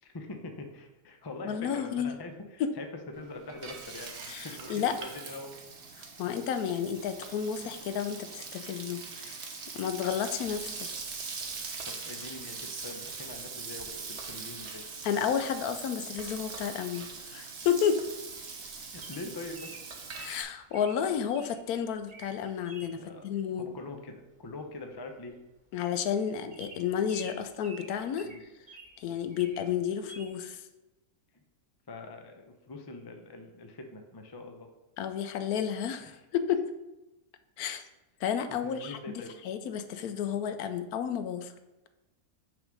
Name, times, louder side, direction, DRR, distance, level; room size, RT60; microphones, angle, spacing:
voice 1, 0.0-5.6 11.8-14.8 17.4-17.5 18.9-19.7 22.9-23.2 23.6-25.3 28.2-28.4 31.9-34.7 36.1-36.2 38.5-39.3, left 2 dB, 35° left, 4 dB, 0.3 m, -43 dB
voice 2, 1.4-2.1 2.6-2.7 4.3-4.9 6.2-9.5 9.7-10.9 15.0-18.0 20.2-23.7 25.7-28.3 29.0-30.6 35.0-36.6 37.6-37.8 38.2-41.5, left 8 dB, 80° left, 9 dB, 1.1 m, -31 dB
Frying (food), 3.1-20.4, right 4 dB, 55° right, 1.1 m, -42 dB
Bird vocalization bird call bird song, 19.0-21.5 22.0-22.3 22.7-22.9 24.4-24.7 24.9-25.0 25.3-25.5 25.9-26.0 26.5-29.0 29.3-29.7 30.1-30.3, right 2 dB, 35° right, 1.2 m, -49 dB
6.2 x 3.5 x 6.1 m, 0.99 s
omnidirectional pair, 1.6 m